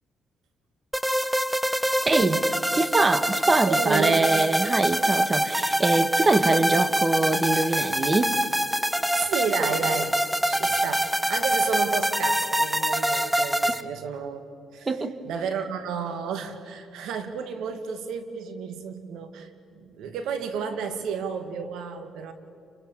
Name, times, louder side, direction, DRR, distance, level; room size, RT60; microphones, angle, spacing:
sound 1, 0.9-13.8, right 1 dB, 5° right, 0.9 m, -25 dB
voice 1, 2.0-2.4 2.8-8.3 14.9-15.1, right 3 dB, 25° right, 11 dB, 1.6 m, -23 dB
voice 2, 3.7-4.3 9.1-22.3, right 6 dB, 85° right, 8 dB, 2.2 m, -32 dB
29.5 x 25.0 x 7.5 m, 2.4 s
cardioid pair, 90°, 0 cm